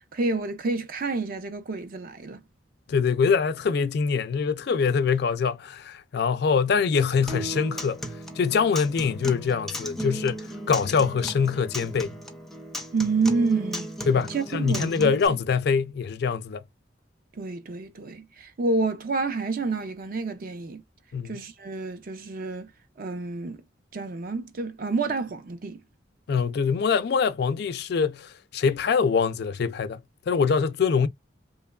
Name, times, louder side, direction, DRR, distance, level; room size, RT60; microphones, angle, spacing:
voice 1, 0.1-2.4 12.9-13.9 14.3-15.4 17.4-20.8 21.2-22.7 23.0-23.6 23.9-25.8, right 3 dB, 50° right, 0.5 m, -29 dB
voice 2, 2.9-8.0 8.3-12.1 14.1-16.6 21.1-21.4 26.3-31.1, left 5 dB, 60° left, 0.3 m, -24 dB
Acoustic guitar, 7.3-15.3, equal, ahead, 0.5 m, -36 dB
2.9 x 2.2 x 2.2 m
head